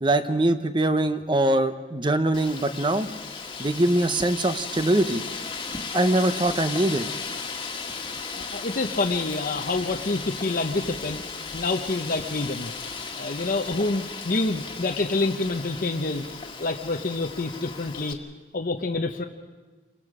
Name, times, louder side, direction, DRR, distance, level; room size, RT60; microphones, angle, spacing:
voice 1, 0.0-3.1 3.6-5.2 5.9-7.1, right 1 dB, 25° right, 10 dB, 0.9 m, -23 dB
Wind, 2.3-18.1, left 4 dB, 30° left, 1.7 m, -36 dB
voice 2, 8.4-11.2 11.5-12.7 13.2-16.3 16.6-18.2 18.5-19.2, left 3 dB, 50° left, 3 dB, 0.8 m, -27 dB
28.5 x 21.5 x 5.0 m, 1.3 s
head